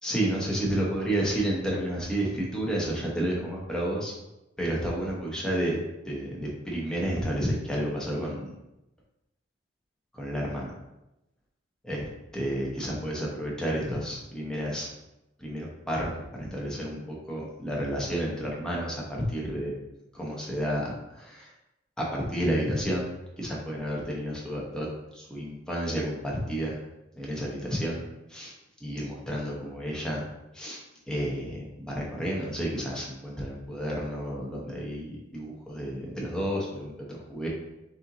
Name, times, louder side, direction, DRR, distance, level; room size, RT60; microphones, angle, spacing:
voice 1, 0.0-4.1 4.6-5.8 6.0-8.5 10.1-10.7 11.8-14.9 15.4-16.1 16.4-19.7 20.1-21.5 22.0-24.9 25.1-26.8 27.2-28.0 28.3-28.5 28.8-30.3 30.5-37.5, equal, 5° left, -4 dB, 0.9 m, -31 dB
6.5 x 2.7 x 2.9 m, 0.92 s
head